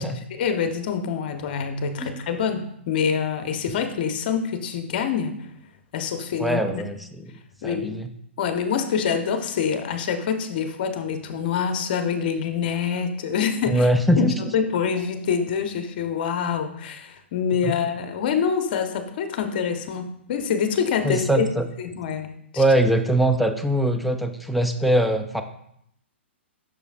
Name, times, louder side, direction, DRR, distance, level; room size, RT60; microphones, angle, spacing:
voice 1, 0.3-5.4 5.9-6.8 7.6-8.0 8.4-13.9 14.2-21.5 21.8-22.3 22.5-22.6, left 7 dB, 45° left, 7 dB, 0.8 m, -26 dB
voice 2, 6.4-7.3 7.6-8.1 13.7-14.3 17.6-17.7 21.0-21.7 22.6-25.4, right 1 dB, ahead, 6 dB, 0.4 m, -22 dB
8.1 x 6.3 x 2.4 m, 0.73 s
figure-of-eight pair, 120°, 7 cm